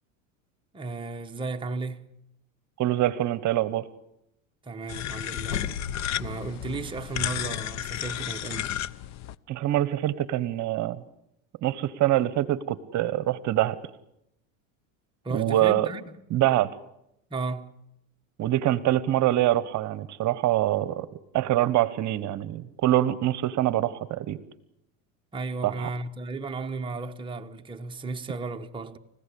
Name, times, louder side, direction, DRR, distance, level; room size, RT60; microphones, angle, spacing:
voice 1, 0.7-2.1 4.6-5.6 6.2-8.7 15.2-16.2 17.3-17.7 25.3-29.0, right 3 dB, 10° right, 1.2 m, -34 dB
voice 2, 2.8-3.8 9.5-11.0 11.6-13.8 15.3-15.9 16.3-16.7 18.4-21.1 21.3-24.4 25.6-25.9, right 14 dB, 45° right, 1.2 m, -24 dB
sound 1, 4.9-9.3, left 12 dB, 45° left, 0.8 m, -33 dB
sound 2, 5.4-8.3 8.7-8.8, left 6 dB, 80° left, 2.3 m, -38 dB
29.0 x 15.5 x 8.5 m
supercardioid pair, 100°, 40 cm